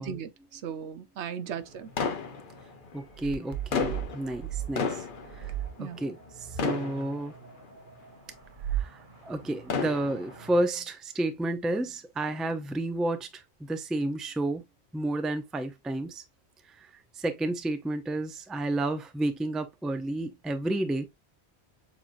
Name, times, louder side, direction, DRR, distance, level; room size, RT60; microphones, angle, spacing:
voice 1, 0.0-1.9 5.8-6.0, right 8 dB, 85° right, 1.0 m, -37 dB
sound 1, 1.4-10.6, right 11 dB, 50° right, 0.9 m, -39 dB
sound 2, 2.0-3.0 3.5-6.3 6.6-7.7 8.3-8.4 9.4-10.5, left 5 dB, 55° left, 0.9 m, -33 dB
voice 2, 2.9-5.0 5.4-5.5 5.8-6.2 6.6-7.3 8.8-14.6 14.9-16.2 17.2-21.1, right 1 dB, ahead, 0.4 m, -31 dB
7.2 x 2.9 x 2.5 m
omnidirectional pair, 1.1 m